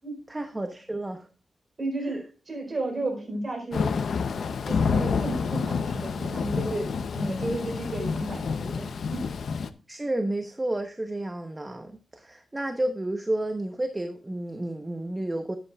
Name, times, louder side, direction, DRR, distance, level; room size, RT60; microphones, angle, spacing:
voice 1, 0.3-1.3 2.1-2.2 9.9-15.6, right 1 dB, 15° right, 6 dB, 0.9 m, -31 dB
voice 2, 1.8-3.9 4.7-9.2, right 2 dB, 35° right, 3 dB, 4.4 m, -33 dB
Thunder / Rain, 3.7-9.7, left 5 dB, 70° left, 0.7 m, -28 dB
12.5 x 9.5 x 2.4 m, 0.35 s
wide cardioid pair, 115°, 0 cm